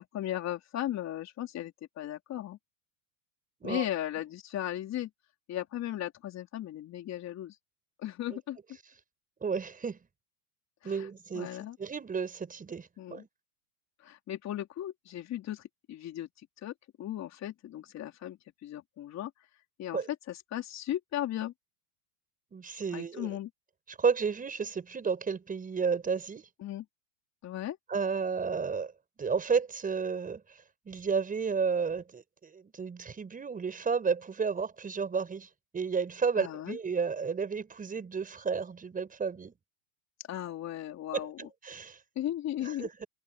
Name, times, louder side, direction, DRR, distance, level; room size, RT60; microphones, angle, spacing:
voice 1, 0.0-2.6 3.6-5.1 5.5-7.6 8.0-8.6 10.8-11.1 11.3-11.8 13.0-13.2 14.0-16.3 16.6-19.3 19.8-20.0 20.3-21.5 22.9-23.5 26.6-26.9 27.4-27.8 36.4-36.8 40.3-41.4 42.2-42.9, left 12 dB, 35° left, 3.7 m, -36 dB
voice 2, 9.4-10.0 10.8-11.5 11.8-13.3 19.9-20.1 22.5-23.4 23.9-26.4 27.9-28.9 29.2-30.6 30.9-35.5 35.7-39.5 41.1-42.0 42.6-43.1, right 5 dB, 20° right, 5.8 m, -32 dB
supercardioid pair, 115°, 44 cm